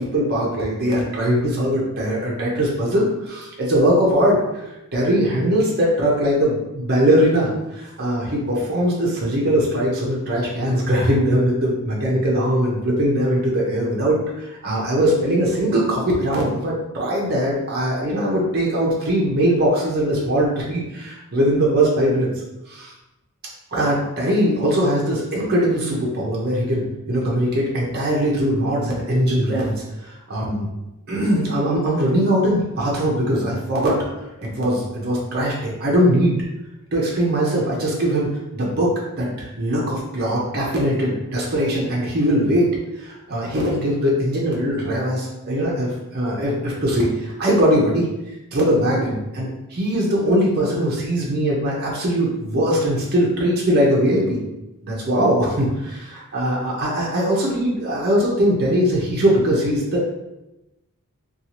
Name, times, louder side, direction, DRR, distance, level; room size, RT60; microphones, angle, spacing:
voice 1, 0.0-4.6 4.9-22.3 22.7-22.9 23.7-30.7 31.1-34.0 34.4-36.4 36.9-38.9 39.2-42.7 43.0-48.1 48.5-54.4 54.8-60.0, equal, 45° right, -4 dB, 0.6 m, -21 dB
2.7 x 2.3 x 2.9 m, 0.95 s
head